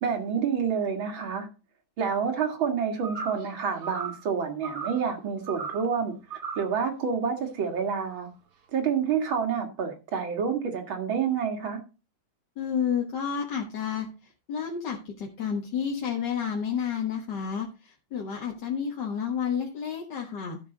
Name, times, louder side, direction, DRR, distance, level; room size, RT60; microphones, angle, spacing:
voice 1, 0.0-1.5 2.0-6.1 6.6-8.3 8.7-11.8, right 6 dB, 80° right, 2.7 m, -28 dB
sound 1, 3.0-3.5 3.8-4.3 4.6-5.0 5.5-5.9 6.3-6.7, right 5 dB, 50° right, 1.4 m, -36 dB
voice 2, 12.6-14.1 14.5-20.6, left 7 dB, 60° left, 1.9 m, -30 dB
12.5 x 7.2 x 3.9 m
omnidirectional pair, 2.1 m